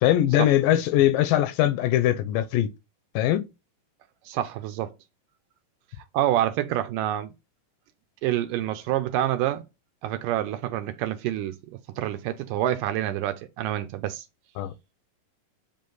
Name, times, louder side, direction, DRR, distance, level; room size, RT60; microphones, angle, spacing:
voice 1, 0.0-2.7 3.2-3.5 14.6-14.7, left 13 dB, 80° left, 2.2 m, -21 dB
voice 2, 4.3-4.9 6.1-7.3 8.2-9.6 10.0-11.6 12.0-14.3, right 12 dB, 80° right, 2.0 m, -27 dB
7.6 x 3.6 x 3.9 m
omnidirectional pair, 4.1 m